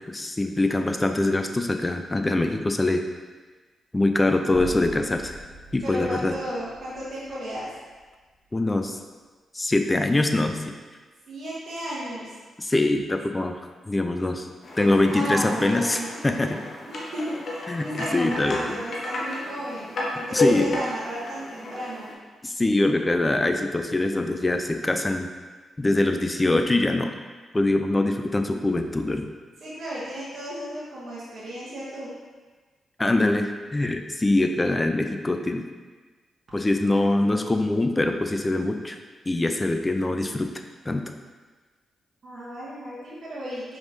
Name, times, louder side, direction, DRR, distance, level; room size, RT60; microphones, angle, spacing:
voice 1, 0.1-3.0 3.9-5.4 5.7-6.3 8.5-9.0 9.5-10.7 12.6-13.6 13.9-14.5 14.8-16.6 17.7-18.8 20.3-20.7 22.4-25.3 25.8-27.1 27.5-29.3 33.0-35.7 36.5-39.0 39.3-40.5 40.9-41.0, left 2 dB, 25° left, 6 dB, 0.4 m, -23 dB
sound 1, 4.5-8.7, right 1 dB, 85° left, 1.1 m, -43 dB
voice 2, 5.8-7.7 11.3-12.3 15.1-16.2 16.8-22.1 29.6-32.1 42.2-43.8, equal, 60° right, -8 dB, 1.0 m, -34 dB
sound 2, 14.6-22.1, left 2 dB, 60° left, 0.9 m, -32 dB
4.7 x 3.6 x 2.6 m, 1.4 s
supercardioid pair, 45°, 0 cm